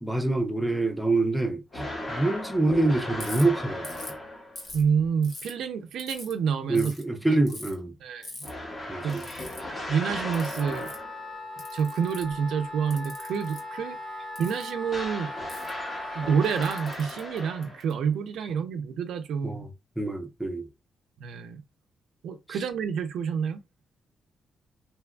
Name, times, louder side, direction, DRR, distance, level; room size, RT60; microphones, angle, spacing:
voice 1, 0.0-4.0 6.7-7.9 8.9-9.2 19.4-19.7 20.0-20.7, right 2 dB, 5° right, 0.5 m, -26 dB
sound 1, 1.7-4.7 8.4-11.3 14.9-18.0, left 1 dB, 30° left, 0.8 m, -37 dB
Ratchet pawl, 3.2-3.4 3.8-4.2 4.6-5.5 6.0-6.3 6.7-7.0 7.5-7.7 8.2-8.5 9.1-9.6 10.3-11.0 11.6-12.4 12.9-13.6 14.3-14.7 15.5-15.7 16.4-17.9, left 2 dB, 50° left, 1.1 m, -42 dB
voice 2, 4.7-6.9 7.3-7.4 8.0-8.3 9.0-9.2 9.9-10.9 11.7-14.0 14.4-15.3 16.1-19.6 21.2-21.6 22.2-23.6, right 6 dB, 85° right, 0.4 m, -28 dB
Wind instrument woodwind instrument, 10.6-16.9, left 2 dB, 15° left, 1.1 m, -39 dB
2.8 x 2.5 x 2.2 m
wide cardioid pair, 165°, 0 cm